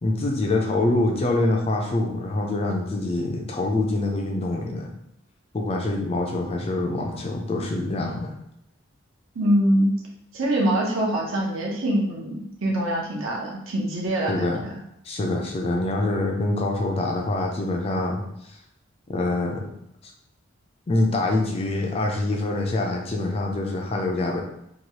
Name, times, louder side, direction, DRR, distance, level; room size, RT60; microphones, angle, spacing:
voice 1, 0.0-4.9 5.5-8.3 14.3-14.6 15.0-18.2 19.1-19.7 20.0-20.1 20.9-24.4, left 2 dB, 25° left, 2 dB, 0.3 m, -25 dB
voice 2, 9.3-9.9 10.3-14.7, right 1 dB, 75° right, -2 dB, 0.8 m, -24 dB
3.0 x 2.3 x 2.8 m, 0.81 s
head